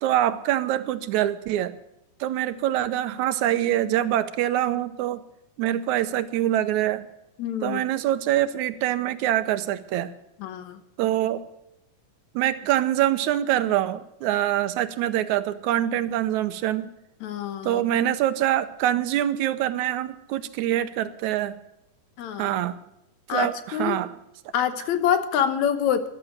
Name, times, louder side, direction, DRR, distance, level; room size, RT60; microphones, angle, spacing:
voice 1, 0.0-1.8 2.2-5.2 5.6-7.1 7.6-10.1 11.0-11.4 12.4-16.9 17.6-21.6 22.4-22.8 23.3-24.1, right 12 dB, 75° right, 12 dB, 2.0 m, -24 dB
voice 2, 7.4-7.8 10.4-10.8 17.2-17.8 22.2-22.5 23.3-24.0 24.5-26.1, left 9 dB, 70° left, 12 dB, 2.3 m, -26 dB
14.0 x 12.0 x 6.4 m, 0.85 s
omnidirectional pair, 3.5 m